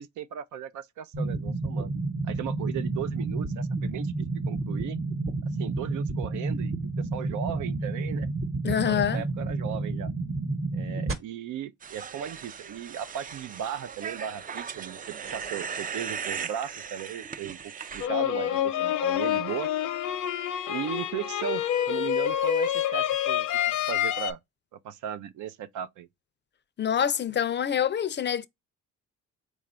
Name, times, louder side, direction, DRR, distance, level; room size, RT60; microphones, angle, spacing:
voice 1, 0.0-1.9 2.2-5.0 5.6-8.3 8.7-10.1 10.7-19.7 20.7-24.4 24.7-26.1, right 9 dB, 75° right, 0.6 m, -37 dB
sound 1, 1.1-11.1, right 3 dB, 45° right, 1.1 m, -30 dB
voice 2, 8.6-9.2 26.8-28.5, left 9 dB, 35° left, 0.5 m, -26 dB
sound 2, 11.8-18.1, right 6 dB, 30° right, 0.4 m, -38 dB
sound 3, 18.0-24.3, left 11 dB, 85° left, 0.7 m, -27 dB
4.1 x 2.4 x 4.3 m
cardioid pair, 90°, 30 cm